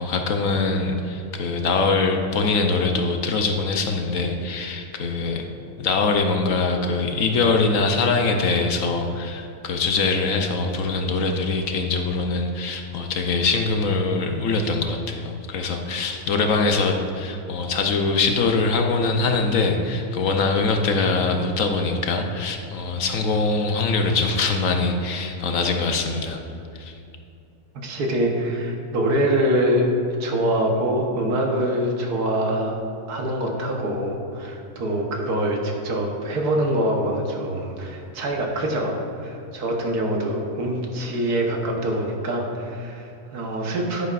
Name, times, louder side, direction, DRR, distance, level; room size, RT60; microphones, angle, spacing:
voice 1, 0.0-5.5 5.8-26.4 26.8-26.9, left 3 dB, 65° left, 4 dB, 1.0 m, -23 dB
voice 2, 27.8-29.9 30.2-32.8 33.1-44.1, right 1 dB, 80° right, 1 dB, 1.6 m, -24 dB
10.5 x 9.3 x 2.5 m, 2.6 s
omnidirectional pair, 1.6 m